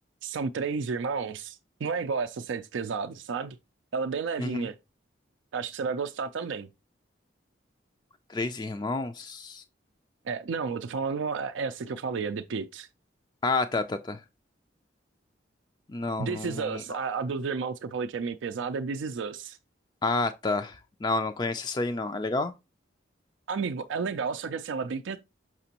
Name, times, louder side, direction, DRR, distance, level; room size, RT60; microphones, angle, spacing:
voice 1, 0.2-3.6 3.9-4.7 5.5-6.7 10.2-12.9 16.2-19.6 23.5-25.2, right 5 dB, 80° right, 0.4 m, -32 dB
voice 2, 4.4-4.7 8.3-9.6 13.4-14.2 15.9-16.8 20.0-22.5, left 3 dB, 25° left, 0.3 m, -30 dB
6.0 x 5.8 x 2.8 m
head